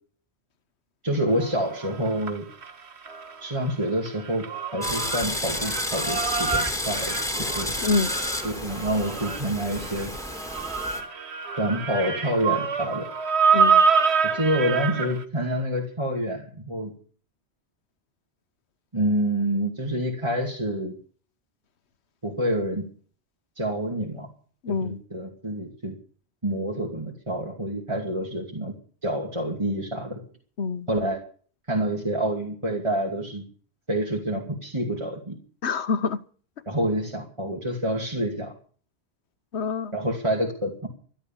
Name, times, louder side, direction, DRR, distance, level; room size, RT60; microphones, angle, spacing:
voice 1, 1.0-2.5 3.4-4.5 4.7-7.1 7.5-7.7 8.4-10.1 11.5-13.1 14.3-16.9 18.9-20.9 22.2-22.9 23.6-24.3 24.7-25.9 26.4-28.7 29.0-30.2 30.9-31.2 31.7-33.4 33.9-35.4 36.7-38.5 39.9-40.9, right 1 dB, 30° right, 2.8 m, -27 dB
sound 1, 1.4-3.4 3.7-15.2, right 6 dB, 80° right, 1.7 m, -26 dB
sound 2, 4.8-11.0, left 1 dB, 5° left, 3.2 m, -31 dB
voice 2, 7.8-8.1 13.5-13.8 24.6-25.0 30.6-30.9 35.6-36.2 39.5-39.9, left 4 dB, 85° left, 1.3 m, -26 dB
13.5 x 12.0 x 7.3 m
omnidirectional pair, 1.1 m